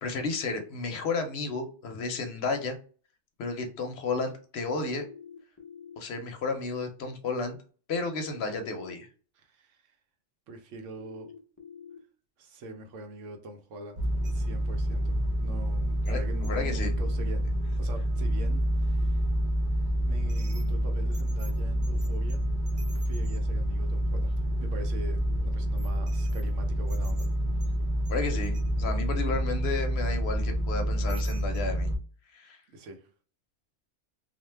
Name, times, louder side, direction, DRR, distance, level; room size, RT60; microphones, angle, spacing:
voice 1, 0.0-2.8 3.4-5.0 6.0-7.6 7.9-9.1 16.0-16.9 28.1-31.9 32.3-32.6, left 3 dB, 65° left, 0.8 m, -32 dB
sound 1, 5.0-6.0 8.0-9.0 11.0-12.0, left 7 dB, 30° left, 0.4 m, -47 dB
voice 2, 9.3-10.0 10.5-11.3 12.4-14.0 14.3-17.4 17.8-19.2 20.0-22.4 23.0-24.3 24.6-27.3 32.7-33.1, right 2 dB, 85° right, 1.0 m, -44 dB
sound 2, 14.0-32.0, equal, 50° right, 0.6 m, -28 dB
2.5 x 2.2 x 3.2 m
omnidirectional pair, 1.2 m